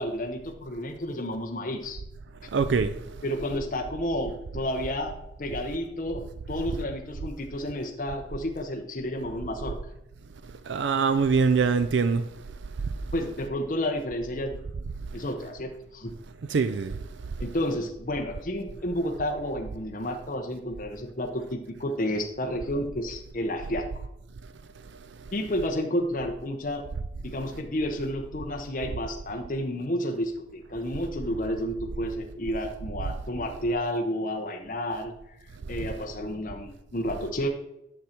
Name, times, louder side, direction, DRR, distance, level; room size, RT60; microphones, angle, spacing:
voice 1, 0.0-2.0 3.2-9.8 13.1-14.6 15.1-16.1 17.4-23.9 25.3-26.9 27.2-35.1 35.7-37.5, equal, 45° left, 0.8 m, -31 dB
voice 2, 2.5-3.0 10.7-12.2 16.5-17.0, right 5 dB, 80° right, 0.4 m, -23 dB
10.0 x 6.4 x 4.4 m
head